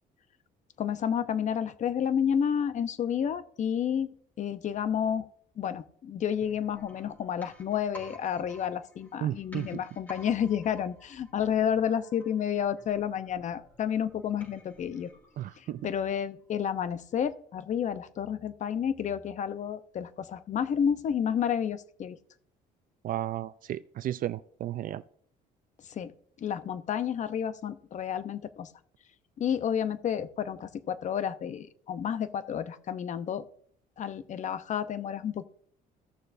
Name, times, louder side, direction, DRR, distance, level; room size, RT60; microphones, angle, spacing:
voice 1, 0.8-4.1 4.4-5.3 5.6-15.1 15.6-22.2 25.8-26.1 26.4-28.7 29.4-33.4 34.0-35.4, left 8 dB, 45° left, 0.7 m, -30 dB
sound 1, 6.4-16.1 16.4-16.5, equal, 10° left, 3.3 m, -54 dB
voice 2, 9.2-9.7 15.4-15.9 23.0-25.0, right 12 dB, 55° right, 0.4 m, -33 dB
16.0 x 6.6 x 2.6 m
cardioid pair, 110°, 17 cm